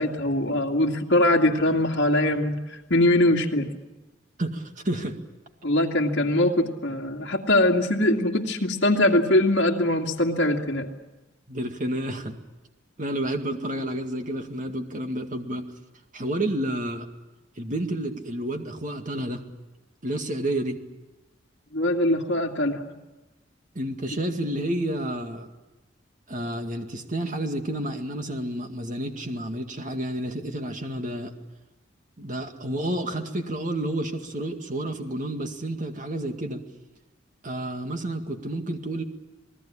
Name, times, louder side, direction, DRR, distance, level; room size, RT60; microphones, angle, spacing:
voice 1, 0.0-3.7 5.6-10.9 21.7-22.9, left 1 dB, 65° left, -2 dB, 2.4 m, -22 dB
voice 2, 4.4-5.2 11.5-12.4 13.0-15.7 16.1-17.1 17.6-19.4 20.0-20.8 23.8-25.5 26.3-31.3 32.2-36.6 37.4-39.0, right 1 dB, 45° right, 5 dB, 2.1 m, -30 dB
27.0 x 19.5 x 8.7 m, 1.1 s
head